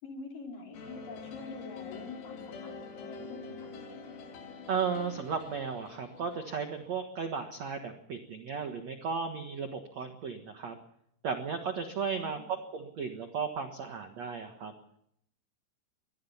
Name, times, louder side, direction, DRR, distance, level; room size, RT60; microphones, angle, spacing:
voice 1, 0.0-3.7 12.1-12.5, left 3 dB, 45° left, 1 dB, 5.5 m, -46 dB
sound 1, 0.7-7.0, left 5 dB, 80° left, 5.3 m, -45 dB
voice 2, 4.7-10.8 11.2-14.7, right 6 dB, 65° right, 6 dB, 1.7 m, -35 dB
24.0 x 19.5 x 5.7 m, 0.72 s
omnidirectional pair, 5.5 m